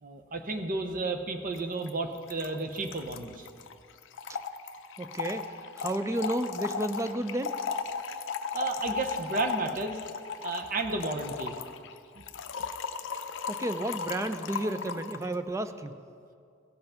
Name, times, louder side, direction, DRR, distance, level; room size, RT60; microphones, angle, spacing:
voice 1, 0.0-3.5 8.5-10.0 10.4-11.5, right 3 dB, 40° right, 5 dB, 0.7 m, -32 dB
Trickle dribble / Fill (with liquid), 1.5-1.6 1.9-2.0 2.2-15.3, left 6 dB, 60° left, 0.5 m, -36 dB
voice 2, 5.0-5.4 5.8-7.5 13.5-16.0, right 1 dB, 15° right, 10 dB, 0.4 m, -32 dB
16.5 x 5.6 x 5.7 m, 2.3 s
head